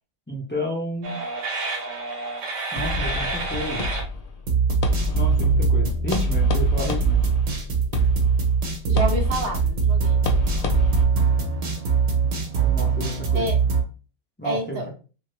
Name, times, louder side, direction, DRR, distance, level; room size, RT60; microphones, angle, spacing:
voice 1, 0.3-1.2 2.7-4.0 5.1-7.2 12.6-13.5 14.4-14.9, equal, 10° left, -2 dB, 0.6 m, -31 dB
sound 1, 1.0-4.0 4.5-13.8, right 6 dB, 80° right, 1.2 m, -23 dB
sound 2, 2.8-11.0, left 3 dB, 70° left, 0.3 m, -28 dB
voice 2, 8.9-10.2 13.3-13.6 14.4-14.9, right 1 dB, 65° right, 2 dB, 0.9 m, -28 dB
2.8 x 2.6 x 3.1 m, 0.36 s
omnidirectional pair, 1.2 m